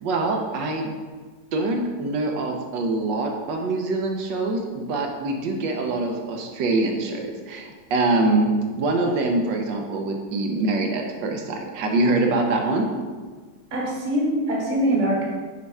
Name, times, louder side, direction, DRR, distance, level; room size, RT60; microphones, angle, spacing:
voice 1, 0.0-0.9 1.5-8.5 8.8-12.9, right 2 dB, 85° right, 2 dB, 1.4 m, -24 dB
voice 2, 13.7-15.2, right 1 dB, 30° right, -2 dB, 0.9 m, -23 dB
6.6 x 4.2 x 3.5 m, 1.4 s
omnidirectional pair, 1.9 m